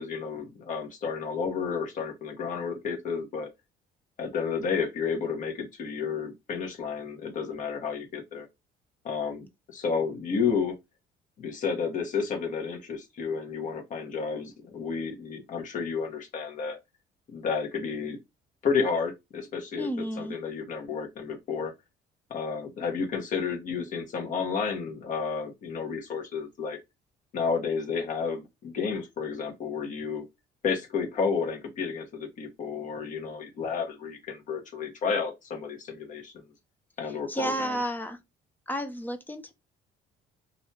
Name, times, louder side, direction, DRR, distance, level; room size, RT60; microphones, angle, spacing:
voice 1, 0.0-3.5 4.2-8.5 9.0-10.7 11.4-16.8 17.3-18.2 18.6-21.7 22.3-26.8 27.3-30.2 30.6-36.4 37.0-37.8, left 5 dB, 50° left, 0.9 m, -31 dB
voice 2, 19.8-20.4 37.3-38.2 38.7-39.5, right 1 dB, 10° left, 0.5 m, -31 dB
2.6 x 2.2 x 2.7 m
cardioid pair, 110°, 17 cm